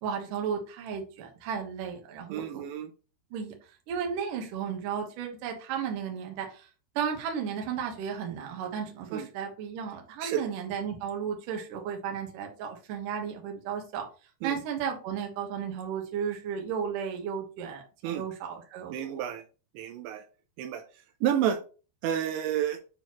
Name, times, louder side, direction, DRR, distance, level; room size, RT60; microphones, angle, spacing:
voice 1, 0.0-2.6 3.3-3.5 3.9-6.7 7.0-14.1 14.4-19.2, right 7 dB, 65° right, 2 dB, 2.2 m, -34 dB
voice 2, 2.3-2.9 9.1-9.3 10.2-10.5 14.4-14.6 18.0-18.2 18.9-19.4 19.7-20.2 20.6-20.8 21.2-21.6 22.0-22.8, right 10 dB, 80° right, 5 dB, 2.8 m, -30 dB
9.1 x 4.0 x 3.0 m, 0.35 s
omnidirectional pair, 5.4 m